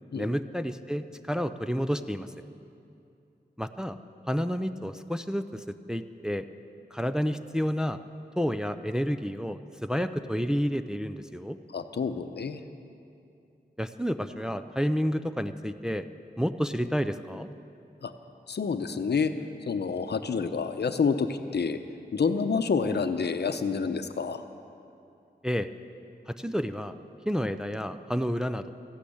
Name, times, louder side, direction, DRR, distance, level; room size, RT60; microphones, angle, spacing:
voice 1, 0.1-2.3 3.6-4.0 4.3-6.5 6.9-8.0 8.4-11.6 13.8-16.0 16.4-17.5 25.4-25.7 26.3-26.9 27.3-28.7, equal, 5° right, 9 dB, 0.5 m, -30 dB
voice 2, 11.7-12.6 18.0-18.1 18.5-19.3 19.7-21.8 22.1-24.4, left 5 dB, 70° left, 9 dB, 0.8 m, -28 dB
14.5 x 11.5 x 8.6 m, 2.6 s
wide cardioid pair, 100°, 18 cm